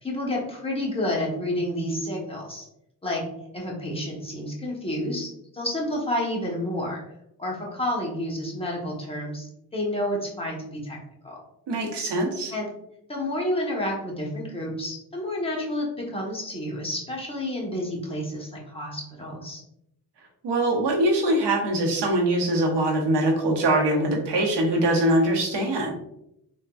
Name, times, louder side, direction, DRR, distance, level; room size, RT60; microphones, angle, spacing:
voice 1, 0.0-2.6 3.0-3.2 3.5-7.0 7.4-11.0 11.2-11.4 12.5-12.7 13.1-19.6, left 1 dB, 15° left, -3 dB, 0.9 m, -30 dB
voice 2, 11.7-12.5 20.4-25.9, right 1 dB, 75° right, 0 dB, 0.9 m, -23 dB
3.4 x 2.3 x 2.3 m, 0.80 s
cardioid pair, 95°, 42 cm